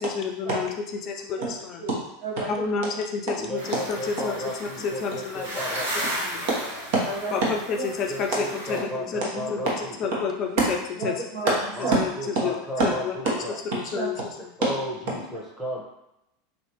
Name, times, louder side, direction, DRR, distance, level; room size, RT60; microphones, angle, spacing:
voice 1, 0.0-0.7 1.0-1.8 2.5-5.6 6.1-6.4 7.3-9.6 10.0-10.8 11.0-11.5 11.9-12.1 12.4-12.5 12.8-13.4 13.7-14.5, left 5 dB, 40° left, 3 dB, 0.4 m, -30 dB
voice 2, 1.8-2.5 6.5-6.6 7.0-7.3 7.8-7.9 9.2-9.5 11.0-11.1 11.3-12.0 12.8-12.9 13.9-14.1, right 3 dB, 60° right, -4 dB, 1.2 m, -27 dB
voice 3, 3.4-6.1 8.1-10.1 11.7-13.5 14.6-15.8, equal, 5° left, -3 dB, 0.9 m, -34 dB
sound 1, 3.6-8.8, equal, 90° right, 1.3 m, -34 dB
3.1 x 2.7 x 3.0 m, 0.86 s
figure-of-eight pair, 85°, 0 cm